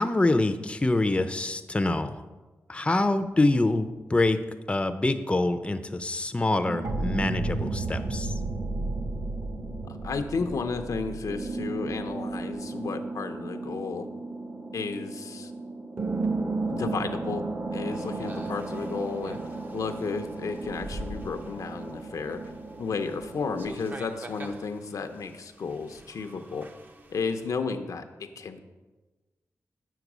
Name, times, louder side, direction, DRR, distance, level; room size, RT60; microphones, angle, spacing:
voice 1, 0.0-2.2 2.7-4.4 4.7-8.3, left 2 dB, 20° left, 9 dB, 0.5 m, -25 dB
sound 1, 6.6-23.7, right 3 dB, 50° right, 1.2 m, -35 dB
sound 2, 6.8-12.5, right 2 dB, 75° right, 0.9 m, -33 dB
voice 2, 9.9-14.1 14.7-15.5 16.7-17.5 17.7-19.4 19.7-22.4 22.8-26.7 27.1-28.6, left 4 dB, 80° left, 7 dB, 0.6 m, -33 dB
sound 3, 17.9-27.6, right 1 dB, 30° right, 0.7 m, -46 dB
8.1 x 4.6 x 6.1 m, 1.2 s
cardioid pair, 70°, 6 cm